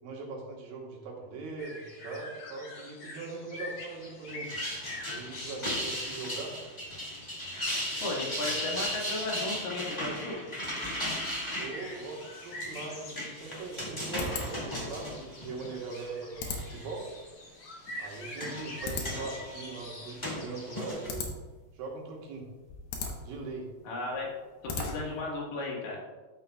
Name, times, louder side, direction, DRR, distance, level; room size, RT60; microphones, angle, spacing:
voice 1, 0.0-4.5 5.1-6.6 11.6-17.1 18.0-21.3 21.7-22.5 23.2-23.7, right 3 dB, 80° right, -2 dB, 3.1 m, -40 dB
sound 1, 1.6-20.9, left 1 dB, 55° left, 1.6 m, -46 dB
sound 2, 4.3-16.0 16.5-17.1 17.9-21.1, equal, 15° left, 0.9 m, -37 dB
voice 2, 8.0-10.5 23.8-24.3 24.8-26.0, left 2 dB, 70° left, -3 dB, 3.1 m, -35 dB
sound 3, 13.1-25.3, left 3 dB, 85° left, 2.9 m, -41 dB
11.5 x 6.7 x 2.3 m, 1.2 s
omnidirectional pair, 4.2 m